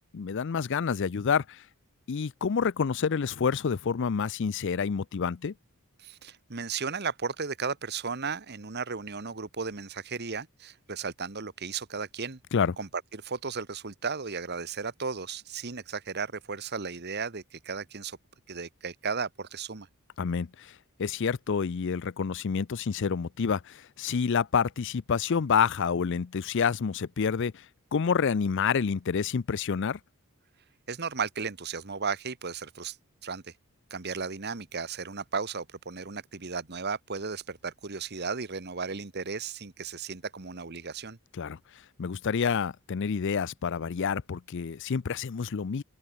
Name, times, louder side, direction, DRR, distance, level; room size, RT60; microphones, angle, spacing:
voice 1, 0.1-1.6 2.1-5.5 12.5-12.7 20.2-20.7 21.0-27.6 27.9-30.0 41.4-41.6 42.0-45.8, left 6 dB, 55° left, 0.5 m, -28 dB
voice 2, 6.0-12.4 12.8-18.2 18.5-19.9 30.9-33.0 33.2-33.4 33.9-41.2, right 5 dB, 50° right, 1.3 m, -35 dB
open air
head